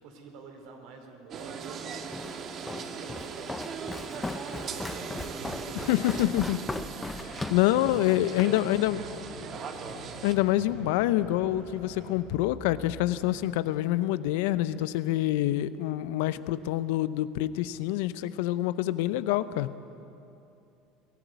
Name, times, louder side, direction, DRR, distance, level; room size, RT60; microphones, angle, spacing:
voice 1, 0.0-6.9 7.6-9.9, right 4 dB, 70° right, 4 dB, 4.1 m, -48 dB
sound 1, 1.3-10.4, right 6 dB, 45° right, 1.9 m, -39 dB
Walk footsteps, 2.1-8.6, left 2 dB, 15° left, 0.6 m, -38 dB
sound 2, 4.7-13.4, right 2 dB, 85° right, 5.9 m, -47 dB
voice 2, 5.9-6.6 7.5-9.0 10.2-19.7, left 15 dB, 80° left, 15 dB, 0.7 m, -26 dB
22.5 x 14.0 x 9.4 m, 2.8 s
supercardioid pair, 100°, 0 cm